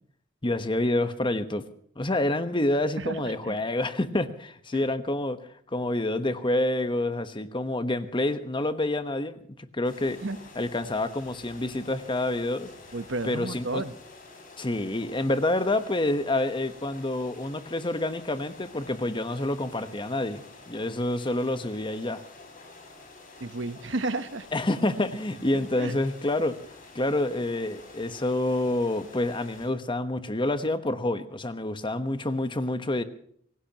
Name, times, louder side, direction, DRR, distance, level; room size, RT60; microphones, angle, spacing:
voice 1, 0.4-1.6 2.0-5.4 5.7-9.4 9.7-10.2 10.5-12.7 13.2-13.8 14.6-22.2 24.5-26.6 26.9-33.0, left 1 dB, 25° left, 10 dB, 1.1 m, -28 dB
voice 2, 3.0-3.6 4.7-4.8 10.2-10.4 12.9-13.9 23.4-24.5 25.5-26.0, right 2 dB, 65° right, 12 dB, 1.1 m, -32 dB
sound 1, 9.8-29.7, left 3 dB, 45° left, 6.5 m, -49 dB
25.5 x 17.5 x 3.0 m, 0.64 s
head